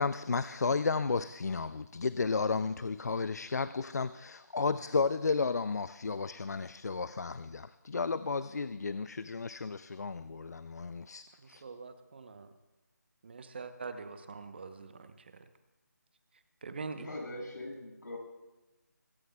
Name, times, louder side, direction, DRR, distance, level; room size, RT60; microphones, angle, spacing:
voice 1, 0.0-11.6, left 4 dB, 60° left, 15 dB, 0.5 m, -33 dB
voice 2, 11.6-12.5 13.2-15.1 16.6-17.1, right 4 dB, 35° right, 9 dB, 0.8 m, -43 dB
voice 3, 17.0-18.2, left 1 dB, 80° left, 0 dB, 6.5 m, -41 dB
22.5 x 17.5 x 2.3 m, 1.1 s
figure-of-eight pair, 165°, 10 cm